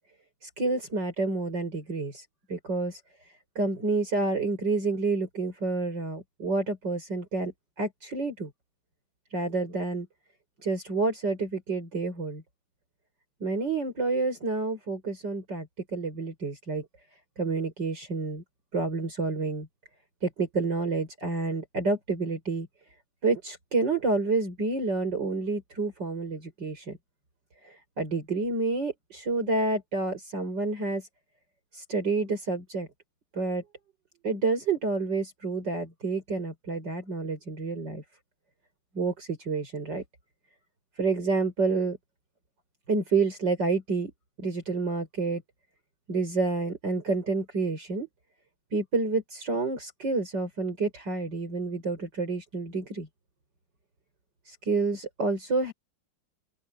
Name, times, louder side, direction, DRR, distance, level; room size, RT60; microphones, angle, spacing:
voice 1, 0.6-2.2 2.5-3.0 3.6-7.5 7.8-8.5 9.3-10.1 10.6-12.4 13.4-15.7 15.9-16.8 17.4-18.4 18.7-19.7 20.2-22.7 23.2-27.0 28.0-31.0 31.9-32.9 33.4-33.6 34.2-38.0 39.0-40.0 41.0-42.0 42.9-44.1 44.4-45.4 46.1-48.1 48.7-53.1 54.7-55.7, right 3 dB, 55° right, 5.9 m, -29 dB
open air
omnidirectional pair, 2.3 m